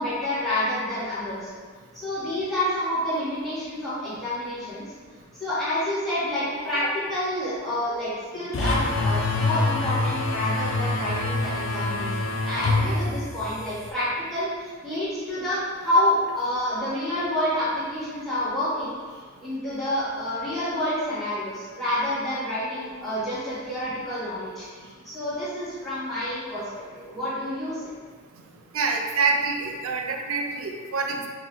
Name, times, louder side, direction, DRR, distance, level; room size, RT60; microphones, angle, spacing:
voice 1, 0.0-1.5 1.9-4.8 5.3-6.8 7.1-26.6 26.9-27.8, left 1 dB, ahead, -14 dB, 1.4 m, -28 dB
sound 1, 8.5-13.9, left 2 dB, 65° left, 0.4 m, -26 dB
voice 2, 28.7-31.3, right 4 dB, 75° right, 2 dB, 0.4 m, -26 dB
3.8 x 2.8 x 3.1 m, 1.5 s
head